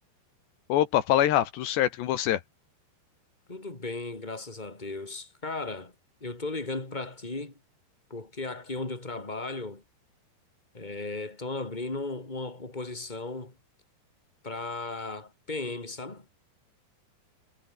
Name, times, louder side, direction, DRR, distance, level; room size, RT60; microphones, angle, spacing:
voice 1, 0.7-2.4, left 12 dB, 80° left, 3.7 m, -24 dB
voice 2, 3.5-5.9 6.2-7.5 8.1-9.8 10.7-13.5 14.4-16.3, left 3 dB, 10° left, 4.5 m, -36 dB
omnidirectional pair, 5.0 m